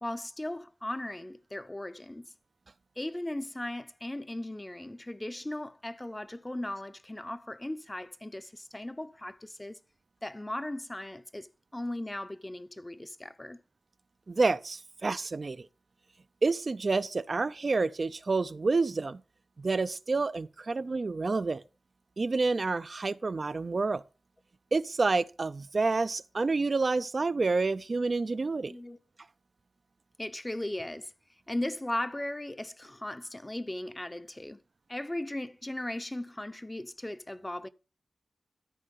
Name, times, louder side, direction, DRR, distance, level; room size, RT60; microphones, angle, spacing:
voice 1, 0.0-2.3 3.0-9.8 10.2-13.6 28.7-29.0 30.2-31.1 31.5-34.6 34.9-37.7, left 1 dB, 20° left, 0.7 m, -37 dB
voice 2, 14.3-15.7 16.4-19.2 19.6-21.6 22.2-24.0 24.7-28.7, right 3 dB, 50° right, 0.4 m, -28 dB
13.0 x 4.5 x 5.3 m
wide cardioid pair, 70°, 0 cm